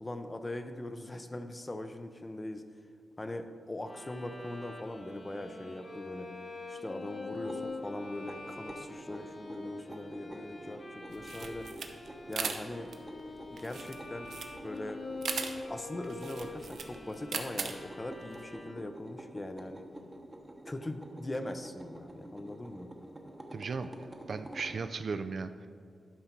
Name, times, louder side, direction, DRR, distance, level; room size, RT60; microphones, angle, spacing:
voice 1, 0.0-2.6 3.2-6.3 6.7-11.7 12.3-12.9 13.5-14.3 14.6-15.0 15.7-19.9 20.6-22.9, left 1 dB, 20° left, 8 dB, 0.6 m, -41 dB
Bowed string instrument, 3.8-19.1, left 3 dB, 35° left, 1.0 m, -45 dB
sound 1, 7.3-24.8, right 1 dB, 15° right, 0.9 m, -49 dB
sound 2, 11.1-18.4, right 5 dB, 75° right, 0.7 m, -40 dB
voice 2, 23.5-25.7, right 4 dB, 50° right, 10 dB, 0.4 m, -37 dB
12.0 x 5.6 x 4.4 m, 2.1 s
wide cardioid pair, 145°, 0 cm